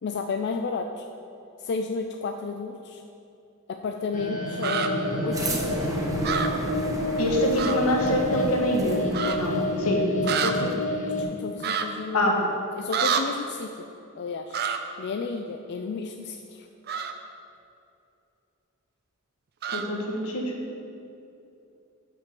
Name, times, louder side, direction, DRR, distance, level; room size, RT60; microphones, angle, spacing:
voice 1, 0.0-1.1 1.6-3.0 3.7-6.0 10.3-12.5 12.7-13.7 14.1-14.6 15.0-16.7, left 4 dB, 50° left, 5 dB, 0.4 m, -32 dB
sound 1, 4.1-11.2, left 1 dB, 35° left, 1.0 m, -29 dB
sound 2, 4.6-4.9 6.2-6.5 7.6-7.8 8.1-8.2 9.1-9.4 10.2-10.5 11.6-11.8 12.9-13.2 14.5-14.8 16.9-17.1 19.6-19.8, right 7 dB, 50° right, 0.5 m, -27 dB
sound 3, 5.3-10.2, right 1 dB, 15° right, 0.8 m, -34 dB
voice 2, 7.2-10.0 12.1-12.3 19.7-20.4, equal, 85° left, 0 dB, 1.4 m, -25 dB
5.8 x 5.8 x 6.9 m, 2.7 s
head